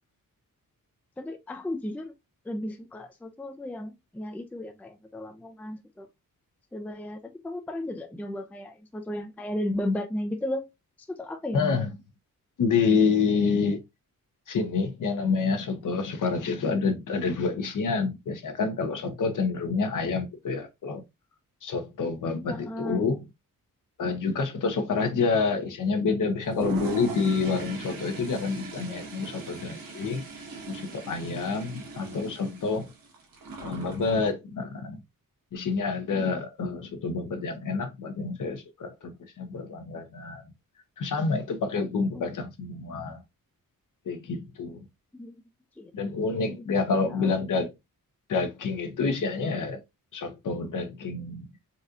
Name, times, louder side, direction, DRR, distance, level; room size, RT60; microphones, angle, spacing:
voice 1, 1.2-2.1 2.5-6.1 6.7-10.7 11.1-11.9 22.5-23.1 42.1-42.3 45.1-45.4 45.8-45.9 46.3-46.7 47.1-47.4, left 1 dB, 5° left, 0.4 m, -34 dB
voice 2, 11.5-11.9 12.6-13.8 14.5-21.0 21.6-23.2 24.0-30.3 30.7-32.9 33.6-35.0 35.5-40.4 41.0-43.2 44.1-44.8 45.9-47.7 48.3-49.8 50.1-51.5, left 4 dB, 60° left, 0.9 m, -28 dB
Toilet flush, 26.4-34.3, right 4 dB, 80° right, 1.1 m, -39 dB
4.1 x 2.6 x 2.4 m
wide cardioid pair, 110°, 35 cm